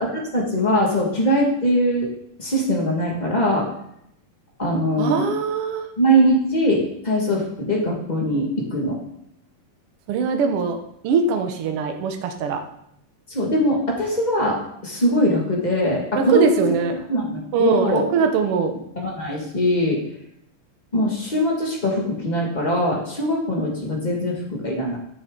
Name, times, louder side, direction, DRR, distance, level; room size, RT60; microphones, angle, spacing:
voice 1, 0.0-2.1 2.4-3.7 4.6-5.3 6.0-9.0 13.3-16.6 17.1-18.1 19.0-20.0 20.9-25.0, equal, 25° left, -2 dB, 0.9 m, -21 dB
voice 2, 5.0-5.9 10.1-10.8 11.0-12.6 16.1-16.9 17.5-18.8, right 5 dB, 65° right, 5 dB, 1.4 m, -21 dB
13.0 x 6.7 x 3.7 m, 0.75 s
omnidirectional pair, 3.7 m